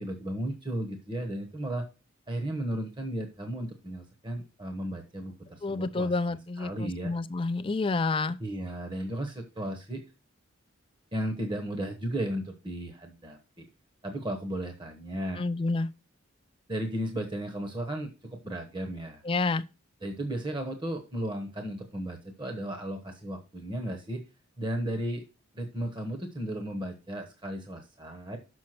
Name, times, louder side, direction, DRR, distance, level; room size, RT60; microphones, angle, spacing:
voice 1, 0.0-1.8 2.3-7.1 8.4-10.0 11.1-13.7 14.0-15.4 16.7-19.2 20.0-24.2 24.6-25.2 25.5-28.4, right 1 dB, 20° right, 1.0 m, -35 dB
voice 2, 5.6-8.4 15.4-15.9 19.3-19.6, left 3 dB, 25° left, 0.4 m, -29 dB
6.3 x 5.7 x 5.9 m
head